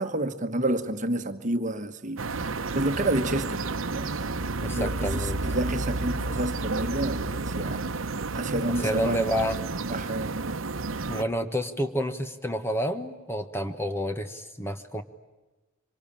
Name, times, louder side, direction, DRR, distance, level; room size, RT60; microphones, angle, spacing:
voice 1, 0.0-2.2 2.7-9.5 9.9-10.5 10.9-11.1, right 1 dB, 40° right, 1.4 m, -30 dB
sound 1, 2.2-11.2, right 3 dB, 85° right, 1.0 m, -31 dB
voice 2, 4.6-5.4 8.8-9.6 11.1-15.0, equal, 10° left, 1.3 m, -29 dB
26.0 x 24.5 x 8.8 m
head